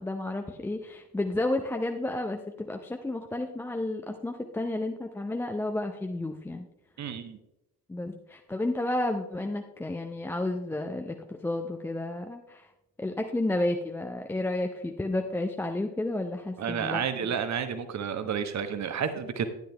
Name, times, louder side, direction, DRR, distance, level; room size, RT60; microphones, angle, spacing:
voice 1, 0.0-6.7 7.9-12.7 13.0-17.0, left 2 dB, 5° left, 4 dB, 0.4 m, -31 dB
voice 2, 7.0-7.4 16.6-19.4, right 7 dB, 35° right, 10 dB, 1.0 m, -31 dB
11.5 x 10.0 x 2.2 m, 0.91 s
figure-of-eight pair, 45°, 49 cm